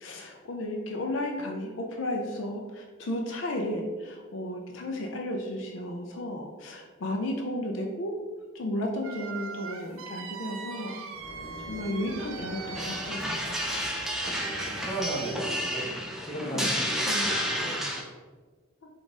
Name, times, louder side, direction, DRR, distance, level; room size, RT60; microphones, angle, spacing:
voice 1, 0.0-8.1 8.5-11.0 11.7-13.4 16.5-16.7 17.1-17.3, left 1 dB, 65° left, 2 dB, 0.4 m, -33 dB
sound 1, 9.0-15.3, right 6 dB, 75° right, 0.4 m, -41 dB
sound 2, 11.0-16.1, right 1 dB, 50° right, 1.3 m, -45 dB
sound 3, 12.7-18.0, equal, ahead, 0.3 m, -31 dB
voice 2, 14.1-18.0, right 1 dB, 20° left, -3 dB, 0.7 m, -36 dB
3.9 x 2.4 x 3.6 m, 1.4 s
head